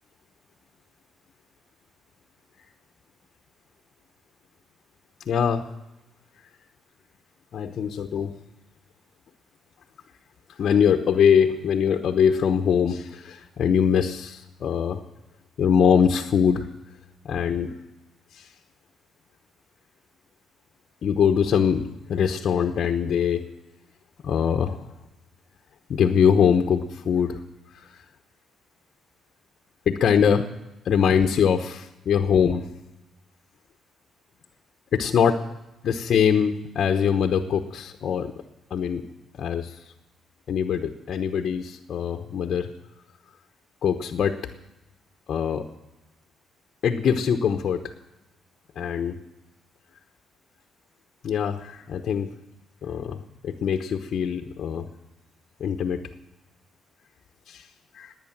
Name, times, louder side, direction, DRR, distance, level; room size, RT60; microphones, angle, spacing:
voice 1, 5.3-5.7 7.5-8.4 10.6-15.0 15.6-16.7 17.2-17.7 18.3-18.5 21.0-23.5 24.2-24.8 25.9-27.4 27.7-27.9 29.9-30.5 30.8-32.7 34.9-35.4 35.8-38.3 38.7-39.1 39.4-39.8 40.5-42.7 43.8-44.4 45.3-45.7 46.8-47.9 48.8-49.2 51.2-52.3 52.8-54.9 55.6-56.0 57.5-57.7 57.9-58.1, left 7 dB, 60° left, 4 dB, 1.0 m, -23 dB
19.0 x 9.6 x 7.4 m, 0.97 s
cardioid pair, 90°, 0 cm